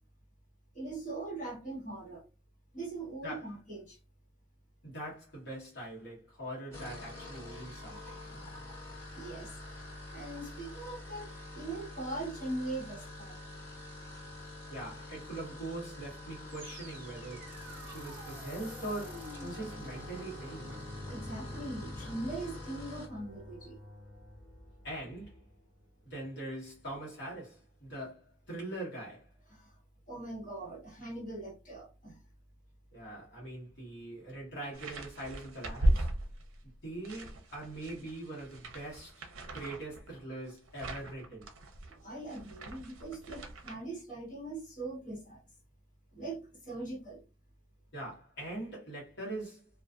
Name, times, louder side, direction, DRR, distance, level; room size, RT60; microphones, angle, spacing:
voice 1, 0.7-2.2 2.7-4.0 9.1-9.5 10.1-13.4 21.1-23.8 29.5-29.7 30.1-32.2 42.0-45.4 46.1-47.2, right 2 dB, 40° left, 1.3 m, -41 dB
voice 2, 4.8-8.5 14.7-17.5 17.9-20.7 24.8-25.4 26.1-29.3 32.9-36.1 36.8-39.2 39.5-41.5 47.9-49.7, right 1 dB, 55° left, 1.1 m, -42 dB
sound 1, 6.7-23.2, left 2 dB, 15° left, 1.0 m, -47 dB
sound 2, 16.5-25.6, left 1 dB, 10° right, 0.9 m, -48 dB
sound 3, 34.7-36.7 37.0-43.7, right 1 dB, 80° right, 0.5 m, -36 dB
2.4 x 2.4 x 2.3 m
head